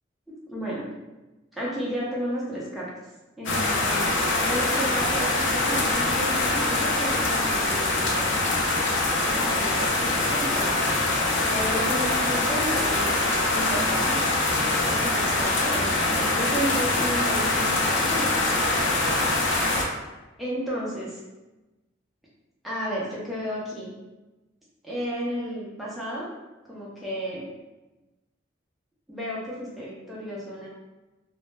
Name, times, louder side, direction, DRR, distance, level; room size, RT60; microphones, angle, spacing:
voice 1, 0.3-0.9 1.5-2.9 3.4-4.1 4.4-8.1 9.2-11.0 11.4-13.3 13.5-14.2 14.8-18.3 20.4-21.2 22.6-23.9 24.8-26.3 26.7-27.5 29.1-30.7, equal, ahead, -7 dB, 0.5 m, -32 dB
sound 1, 3.5-19.8, left 2 dB, 70° left, 0.4 m, -24 dB
2.2 x 2.0 x 3.1 m, 1.1 s
head